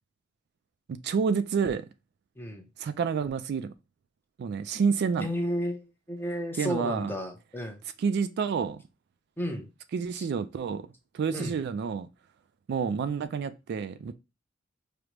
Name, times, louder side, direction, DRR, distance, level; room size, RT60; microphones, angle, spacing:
voice 1, 0.9-1.9 2.8-3.7 4.4-5.3 6.6-7.1 8.0-8.8 9.9-10.9 11.1-12.1 12.7-14.1, right 6 dB, 55° right, 0.3 m, -29 dB
voice 2, 2.4-2.7 5.2-7.8 9.4-9.7 10.2-10.3 11.3-11.6, equal, 10° left, 0.6 m, -33 dB
4.9 x 2.0 x 2.9 m
head